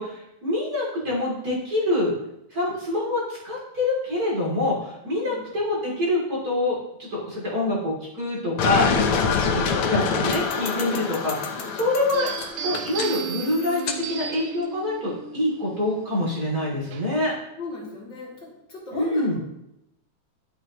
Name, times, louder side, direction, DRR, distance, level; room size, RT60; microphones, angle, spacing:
voice 1, 0.0-2.1 2.5-9.1 9.5-12.3 12.6-13.8 14.1-17.3 18.9-19.4, left 1 dB, 30° right, -4 dB, 3.5 m, -26 dB
voice 2, 5.1-5.5 9.2-9.6 11.5-11.8 17.1-17.2 17.6-19.4, left 3 dB, 35° left, -5 dB, 2.9 m, -38 dB
sound 1, 8.6-14.0, left 5 dB, 65° left, 1.4 m, -26 dB
sound 2, 12.1-17.4, right 7 dB, 75° right, 2.0 m, -35 dB
12.0 x 7.7 x 3.1 m, 0.84 s
omnidirectional pair, 3.6 m